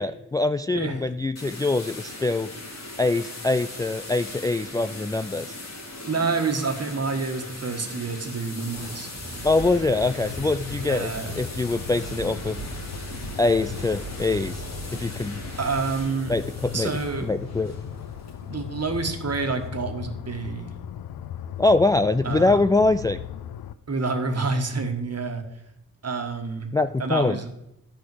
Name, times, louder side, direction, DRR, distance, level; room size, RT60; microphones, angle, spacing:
voice 1, 0.0-2.5 3.0-5.5 9.4-11.1 11.4-12.6 13.4-14.6 14.9-15.4 16.3-17.8 21.6-23.2 26.7-27.4, left 2 dB, 10° left, 11 dB, 0.3 m, -23 dB
sound 1, 1.4-19.7, left 2 dB, 50° left, 2.4 m, -40 dB
voice 2, 6.1-9.1 10.8-11.3 15.6-16.3 16.7-17.3 18.4-20.7 22.2-22.7 23.9-25.4 26.0-26.7 27.0-27.4, right 4 dB, 45° right, 5 dB, 1.6 m, -28 dB
Thunder, 8.3-18.9, right 3 dB, 15° right, 2.4 m, -41 dB
sound 2, 10.0-23.7, left 10 dB, 85° left, 0.5 m, -38 dB
10.5 x 4.2 x 7.8 m, 0.86 s
cardioid pair, 50°, 35 cm